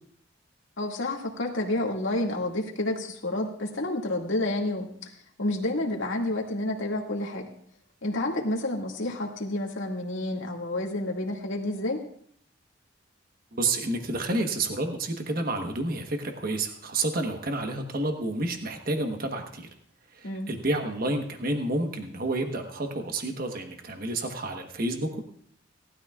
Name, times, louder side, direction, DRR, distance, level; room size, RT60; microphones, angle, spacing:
voice 1, 0.8-5.1 5.4-7.5 8.0-12.0 20.2-20.5, left 1 dB, 80° left, -1 dB, 2.1 m, -29 dB
voice 2, 13.5-19.7 20.1-25.2, right 2 dB, 50° right, 4 dB, 1.2 m, -30 dB
18.5 x 12.5 x 2.4 m, 0.63 s
head